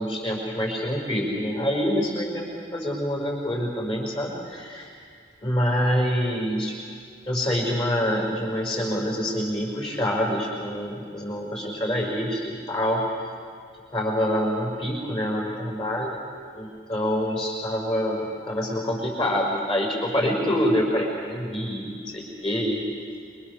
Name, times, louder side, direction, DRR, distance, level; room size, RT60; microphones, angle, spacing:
voice 1, 0.0-4.9 5.4-6.8 7.3-13.0 13.9-16.2 16.5-22.8, equal, 30° left, -1 dB, 5.5 m, -26 dB
26.5 x 24.5 x 6.9 m, 2.2 s
head